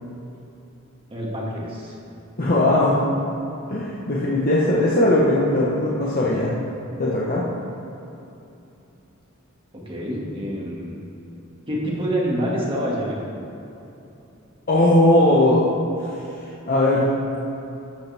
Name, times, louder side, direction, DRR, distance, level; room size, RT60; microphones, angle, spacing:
voice 1, 1.1-1.9 9.7-10.9 11.7-13.2, equal, 25° right, -5 dB, 2.2 m, -27 dB
voice 2, 2.4-3.1 3.7-6.6 7.0-7.4 14.7-15.6 16.0-17.1, left 1 dB, 45° left, -6 dB, 1.2 m, -19 dB
13.0 x 8.9 x 3.6 m, 2.9 s
head